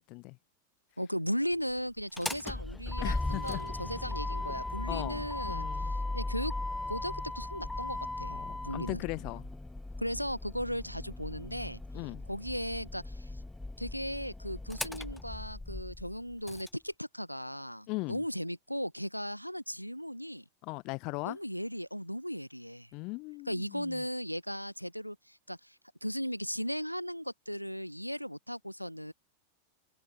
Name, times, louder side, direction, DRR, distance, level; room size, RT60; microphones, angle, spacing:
voice 1, 1.0-6.5 6.9-9.0 10.0-11.8 12.3-13.3 13.8-20.4 21.2-22.9 23.5-25.8 26.0-29.1, equal, 90° left, 0.9 m, -37 dB
Motor vehicle (road), 2.0-16.7, left 2 dB, 5° left, 0.6 m, -38 dB
voice 2, 3.0-3.6 4.9-5.9 8.3-9.5 11.9-12.2 17.9-18.2 20.6-21.4 22.9-24.0, left 27 dB, 40° left, 1.0 m, -39 dB
figure-of-eight pair, 90°, 0 cm